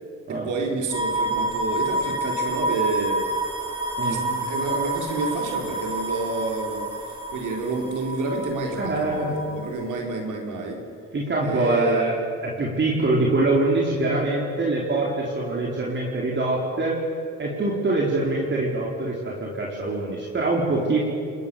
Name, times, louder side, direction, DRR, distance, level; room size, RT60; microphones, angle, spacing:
voice 1, 0.4-3.2 4.0-10.8 11.4-12.0 20.8-20.9, right 3 dB, 80° right, 1 dB, 4.3 m, -29 dB
sound 1, 0.9-10.0, right 2 dB, 15° right, 6.2 m, -29 dB
voice 2, 4.0-4.3 8.8-9.3 11.1-12.2 12.4-17.0 17.4-21.0, right 2 dB, 40° right, -4 dB, 4.6 m, -24 dB
29.0 x 20.0 x 7.1 m, 2.4 s
cardioid pair, 90°, 30 cm